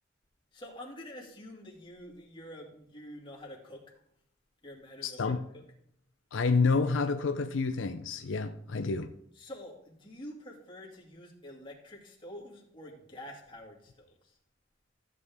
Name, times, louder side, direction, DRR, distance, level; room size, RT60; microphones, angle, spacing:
voice 1, 0.5-3.9 4.6-5.2 5.5-5.6 9.4-14.4, left 1 dB, 25° left, 2.3 m, -47 dB
voice 2, 5.0-5.4 6.3-9.1, left 4 dB, 80° left, 0.5 m, -28 dB
13.5 x 8.2 x 3.5 m
head